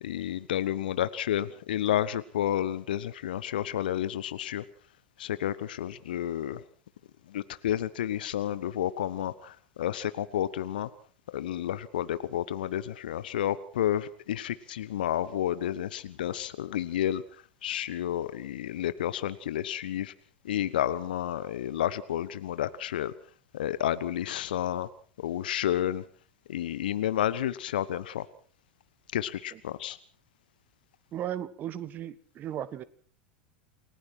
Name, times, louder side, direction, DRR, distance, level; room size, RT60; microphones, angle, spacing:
voice 1, 0.0-4.6 5.2-6.6 7.3-10.9 11.3-17.2 17.6-20.1 20.4-23.1 23.5-24.9 25.2-26.1 26.5-28.3 29.1-30.0, left 11 dB, 65° left, 15 dB, 1.1 m, -30 dB
voice 2, 31.1-32.8, right 11 dB, 35° right, 16 dB, 1.5 m, -36 dB
29.0 x 19.5 x 4.6 m, 0.43 s
figure-of-eight pair, 85°, 5 cm